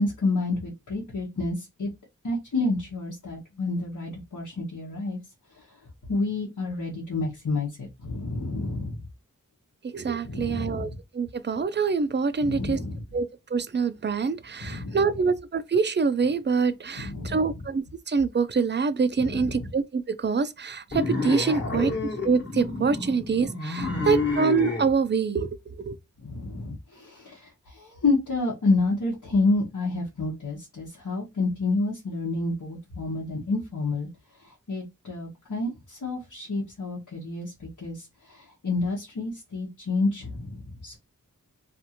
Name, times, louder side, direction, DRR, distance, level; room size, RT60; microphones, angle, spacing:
voice 1, 0.0-1.9 2.2-5.2 5.6-5.7 6.1-9.0 10.2-11.0 12.4-13.0 14.6-15.2 16.9-17.6 19.2-19.7 21.5-22.1 23.8-24.3 26.2-34.1 34.4-41.0, left 3 dB, 75° left, 1.0 m, -29 dB
voice 2, 9.8-10.9 11.1-12.8 13.1-21.9 22.2-25.5 25.8-26.0, right 5 dB, 35° right, 0.4 m, -25 dB
sound 1, 20.9-24.9, left 3 dB, 35° left, 1.0 m, -29 dB
2.6 x 2.5 x 2.8 m
wide cardioid pair, 45°, 32 cm